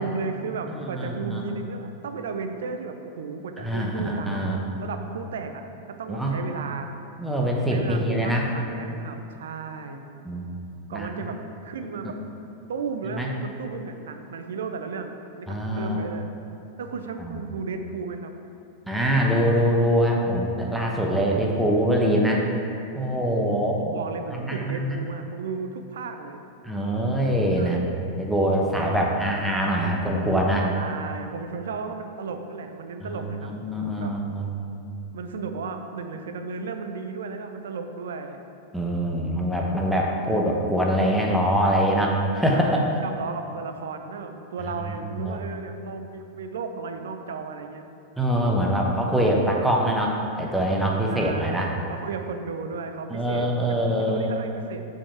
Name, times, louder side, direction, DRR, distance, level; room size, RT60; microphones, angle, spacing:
voice 1, 0.0-4.4 4.8-6.9 7.7-10.1 10.9-12.2 12.7-16.3 16.8-18.3 23.2-26.4 27.5-27.8 30.7-33.6 34.0-34.2 35.1-38.4 42.5-47.8 51.1-54.8, right 5 dB, 65° right, 7 dB, 0.5 m, -34 dB
voice 2, 0.7-1.5 3.6-4.6 6.1-6.4 7.2-8.5 10.2-10.5 10.9-11.3 13.1-13.3 15.5-16.0 17.2-17.4 18.9-22.4 22.9-23.7 24.3-25.0 26.6-27.8 28.2-30.7 33.0-33.2 33.6-34.5 38.7-42.9 45.0-45.4 48.2-51.7 53.1-54.3, equal, 5° right, -2 dB, 1.0 m, -24 dB
7.1 x 5.5 x 4.6 m, 2.9 s
figure-of-eight pair, 90°, 0 cm